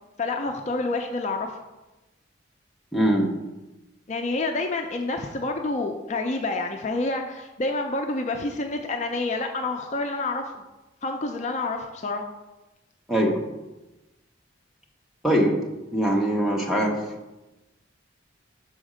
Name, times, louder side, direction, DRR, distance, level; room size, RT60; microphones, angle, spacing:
voice 1, 0.2-1.6 4.1-10.5 11.0-12.2, left 2 dB, 35° left, 3 dB, 0.4 m, -28 dB
voice 2, 2.9-3.3 13.1-13.3 15.2-15.5 15.9-17.0, right 1 dB, ahead, -1 dB, 0.8 m, -21 dB
6.3 x 4.3 x 4.9 m, 1.0 s
head